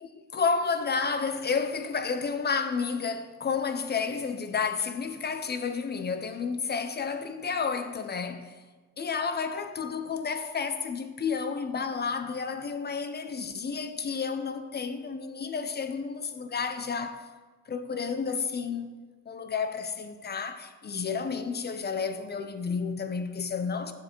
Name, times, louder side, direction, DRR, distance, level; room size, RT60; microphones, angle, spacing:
voice 1, 0.0-8.5 9.0-17.3 17.7-18.9 19.3-23.9, left 5 dB, 35° left, 0.8 m, -31 dB
7.7 x 6.8 x 4.5 m
cardioid pair, 90°, 30 cm